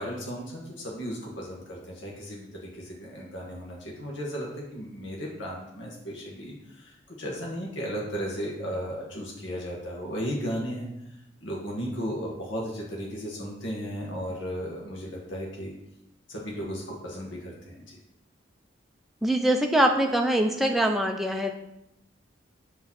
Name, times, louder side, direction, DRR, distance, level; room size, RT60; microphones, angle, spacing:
voice 1, 0.0-10.9 11.4-15.7 16.3-17.8, equal, 75° left, -3 dB, 1.3 m, -35 dB
voice 2, 19.2-21.5, right 1 dB, ahead, 2 dB, 0.4 m, -23 dB
6.1 x 3.1 x 5.7 m, 0.83 s
head